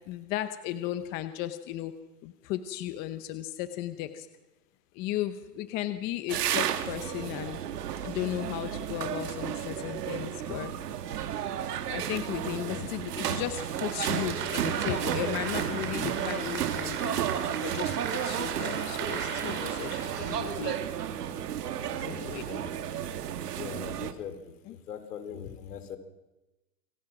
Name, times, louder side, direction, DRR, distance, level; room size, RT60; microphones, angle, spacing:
voice 1, 0.1-1.9 2.2-4.3 5.0-7.6 8.0-10.7 11.9-17.2 17.6-18.0 18.2-20.8 21.9-22.6 24.6-24.8, left 13 dB, 20° left, 10 dB, 0.7 m, -35 dB
sound 1, 6.3-24.1, right 9 dB, 75° right, 2.4 m, -33 dB
Applause, 13.2-21.3, right 7 dB, 25° right, 3.7 m, -38 dB
voice 2, 22.0-22.7 23.5-26.0, left 8 dB, 70° left, 9 dB, 4.2 m, -42 dB
27.5 x 25.5 x 6.1 m, 1.0 s
hypercardioid pair, 155°, 48 cm